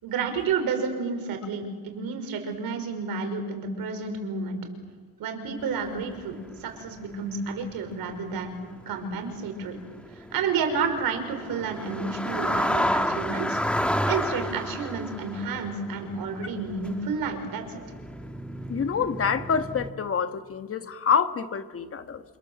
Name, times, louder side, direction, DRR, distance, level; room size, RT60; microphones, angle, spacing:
voice 1, 0.0-4.7 5.2-8.5 8.9-9.8 10.2-17.8, right 5 dB, 65° right, 5.3 m, -30 dB
sound 1, 5.6-6.6 6.9-19.9, equal, 5° left, 1.5 m, -31 dB
voice 2, 18.7-22.2, left 6 dB, 35° left, 1.5 m, -27 dB
28.0 x 27.0 x 7.6 m
cardioid pair, 115°, 38 cm